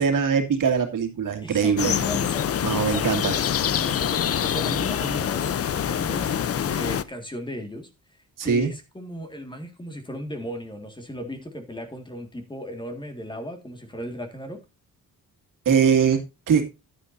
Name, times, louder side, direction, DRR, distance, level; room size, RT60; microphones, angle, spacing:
voice 1, 0.0-2.0 2.6-3.4 8.4-8.7 15.7-16.7, right 6 dB, 65° right, 6 dB, 2.2 m, -22 dB
voice 2, 1.4-3.4 3.8-5.5 5.9-7.9 8.4-14.6, equal, 15° left, 6 dB, 1.9 m, -36 dB
sound 1, 1.8-7.0, left 9 dB, 45° left, 0.6 m, -25 dB
11.5 x 9.6 x 2.6 m, 0.26 s
wide cardioid pair, 150°, 34 cm